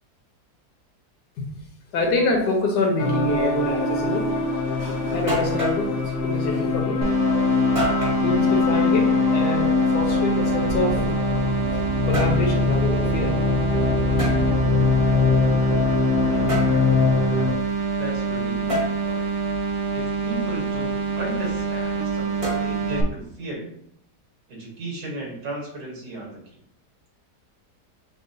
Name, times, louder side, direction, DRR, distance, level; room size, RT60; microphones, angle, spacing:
voice 1, 1.9-4.3 4.8-5.9 6.2-7.0 8.2-11.0 11.7-11.8 12.1-13.3, left 2 dB, 80° left, 0 dB, 1.5 m, -26 dB
sound 1, 3.0-17.5, left 4 dB, 60° left, 0.6 m, -22 dB
sound 2, 5.3-5.9 7.8-8.2 9.9-11.4 11.9-12.4 14.2-14.4 16.5-16.8 18.7-18.9 22.4-23.0, right 1 dB, 25° right, 0.9 m, -28 dB
sound 3, 7.0-23.0, right 5 dB, 70° right, 0.8 m, -26 dB
voice 2, 18.0-19.3 19.9-23.7 24.5-26.4, right 2 dB, 90° right, -1 dB, 1.8 m, -35 dB
6.5 x 2.2 x 2.6 m, 0.70 s
omnidirectional pair, 1.8 m